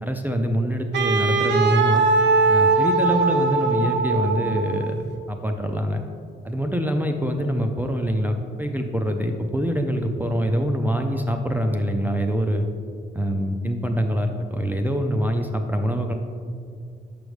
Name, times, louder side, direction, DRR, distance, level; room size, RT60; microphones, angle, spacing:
voice 1, 0.0-2.0 2.5-6.0 6.4-12.7 13.1-16.1, equal, 10° right, 4 dB, 0.4 m, -24 dB
Wind instrument woodwind instrument, 0.9-5.0, right 3 dB, 65° right, 0.7 m, -20 dB
6.0 x 5.1 x 3.2 m, 2.2 s
cardioid pair, 90°, 20 cm